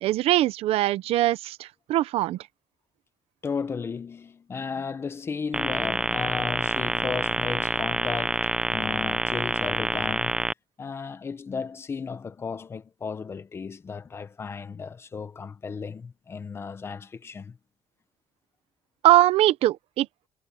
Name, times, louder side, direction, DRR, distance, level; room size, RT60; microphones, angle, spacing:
voice 1, 0.0-2.4 19.0-20.1, right 15 dB, 80° right, 0.7 m, -22 dB
voice 2, 3.4-10.4 10.8-17.6, left 5 dB, 25° left, 0.8 m, -35 dB
sound 1, 5.5-10.5, right 2 dB, 10° right, 0.5 m, -27 dB
cardioid pair, 165°, 10 cm